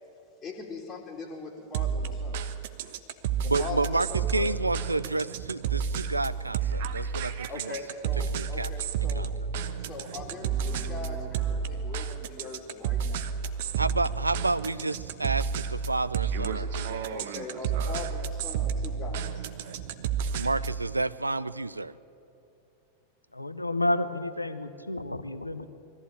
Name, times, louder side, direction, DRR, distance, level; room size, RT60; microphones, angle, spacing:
voice 1, 0.4-2.5 3.3-4.6 7.5-9.3 9.8-13.3 17.1-19.5, left 3 dB, 20° left, -4 dB, 2.7 m, -41 dB
sound 1, 1.7-20.8, right 7 dB, 55° right, 1.0 m, -31 dB
voice 2, 3.5-7.7 8.3-8.7 9.0-9.3 13.8-17.1 20.4-21.9, right 2 dB, 80° right, 15 dB, 0.5 m, -30 dB
sound 2, 9.9-13.6, right 2 dB, 10° right, 3.8 m, -48 dB
voice 3, 23.3-25.7, left 1 dB, 85° left, 11 dB, 1.0 m, -30 dB
21.5 x 14.5 x 9.0 m, 2.7 s
figure-of-eight pair, 90°, 0 cm